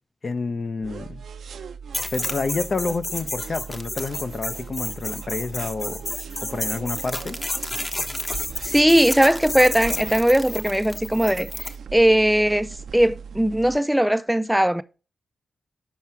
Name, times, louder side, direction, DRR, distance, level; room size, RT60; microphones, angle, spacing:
voice 1, 0.2-1.2 2.1-6.0 6.4-7.4, left 3 dB, 50° left, 0.6 m, -29 dB
sound 1, 0.8-13.8, right 6 dB, 85° right, 0.5 m, -39 dB
sound 2, 1.9-11.8, left 1 dB, 30° left, 1.1 m, -31 dB
voice 2, 8.6-12.7 12.9-14.8, equal, 5° right, 0.4 m, -19 dB
7.3 x 5.7 x 4.5 m
cardioid pair, 70°, 0 cm